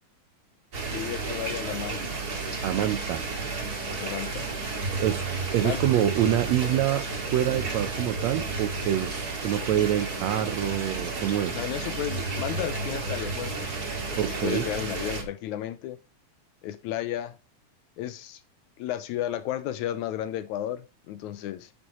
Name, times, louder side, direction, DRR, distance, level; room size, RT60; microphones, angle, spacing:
sound 1, 0.7-15.2, right 3 dB, 35° right, 2.2 m, -32 dB
voice 1, 0.9-2.2 3.9-4.5 5.6-5.8 11.5-13.7 14.0-16.0 16.6-17.4 18.0-18.4 18.8-21.7, left 12 dB, 80° left, 2.0 m, -33 dB
voice 2, 2.6-3.2 5.0-5.2 5.5-7.0 7.3-11.6 14.2-14.7, right 11 dB, 75° right, 1.8 m, -26 dB
9.2 x 8.6 x 3.0 m
omnidirectional pair, 3.5 m